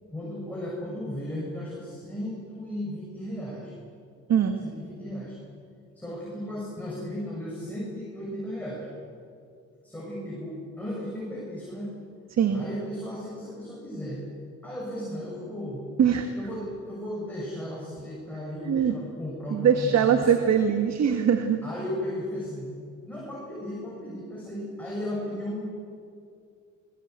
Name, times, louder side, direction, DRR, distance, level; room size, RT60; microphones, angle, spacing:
voice 1, 0.1-3.7 4.6-5.3 6.0-8.9 9.8-11.9 12.5-14.2 14.6-15.8 16.3-20.4 21.6-22.7 23.1-25.6, left 1 dB, 5° left, -5 dB, 7.6 m, -35 dB
voice 2, 12.3-12.6 16.0-16.3 18.7-18.9 19.5-21.6, right 8 dB, 60° right, 6 dB, 1.7 m, -22 dB
22.5 x 21.0 x 8.4 m, 2.4 s
cardioid pair, 90°, 30 cm